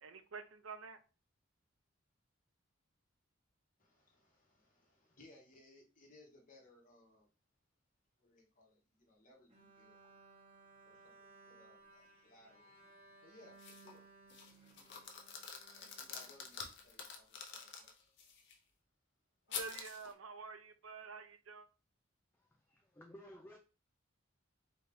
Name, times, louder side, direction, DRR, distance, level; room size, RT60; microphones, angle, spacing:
voice 1, 0.0-1.0 19.5-21.7, right 4 dB, 90° right, 9 dB, 0.6 m, -48 dB
voice 2, 3.8-7.3 8.2-10.2 10.8-12.7 13.2-14.0 15.7-17.9, left 1 dB, 40° left, -1 dB, 1.2 m, -64 dB
Bowed string instrument, 9.5-16.9, right 3 dB, 30° right, 1.1 m, -62 dB
sound 1, 13.6-14.0 14.3-18.5 19.5-20.1, left 6 dB, 60° left, 0.7 m, -47 dB
voice 3, 22.3-23.6, equal, 10° left, 1 dB, 0.4 m, -56 dB
4.1 x 2.8 x 3.5 m, 0.33 s
head